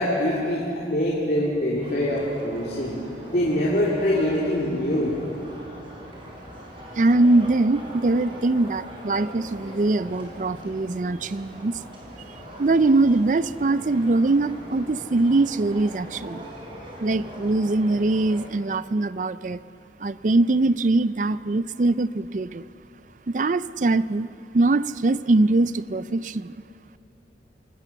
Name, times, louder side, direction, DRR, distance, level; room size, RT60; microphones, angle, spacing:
voice 1, 0.0-3.0 3.3-5.2, left 1 dB, 55° left, -5 dB, 2.8 m, -24 dB
sound 1, 1.7-18.5, equal, 30° right, 5.3 m, -41 dB
voice 2, 6.9-11.8 12.6-16.4 17.0-19.6 20.0-22.6 23.3-24.3 24.5-26.5, right 2 dB, 45° right, 15 dB, 0.4 m, -22 dB
26.5 x 19.0 x 7.0 m, 2.9 s
head